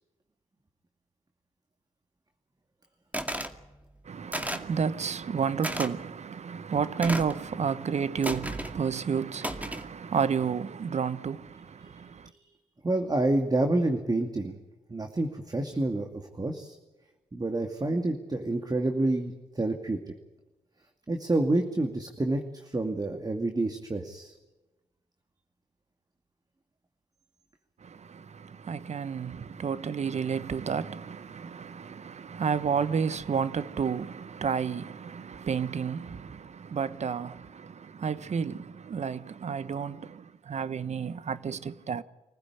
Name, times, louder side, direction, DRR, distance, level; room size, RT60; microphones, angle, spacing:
sound 1, 3.1-3.6 4.3-4.7 5.6-5.9 7.0-7.4 8.2-8.7 9.4-9.9, right 1 dB, 10° right, 2.3 m, -33 dB
voice 1, 4.0-12.3 27.8-42.0, right 6 dB, 55° right, 1.1 m, -31 dB
voice 2, 12.8-14.6 14.9-16.1 16.3-16.8 17.3-20.0 21.1-24.3, right 2 dB, 30° right, 2.4 m, -28 dB
25.0 x 15.5 x 9.8 m
supercardioid pair, 45°, 14 cm